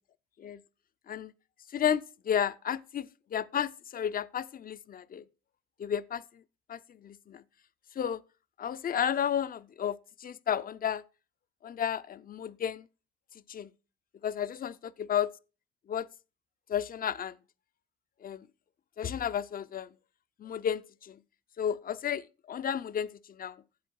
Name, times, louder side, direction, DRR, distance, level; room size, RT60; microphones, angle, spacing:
voice 1, 1.7-5.2 5.8-6.4 6.7-7.4 8.0-8.2 8.6-11.0 11.6-12.9 13.5-13.7 14.2-15.3 15.9-16.1 16.7-17.3 18.2-18.5 19.0-19.9 20.4-21.2 21.6-23.6, left 9 dB, 45° left, 0.6 m, -32 dB
11.0 x 7.8 x 4.6 m
cardioid pair, 90°, 20 cm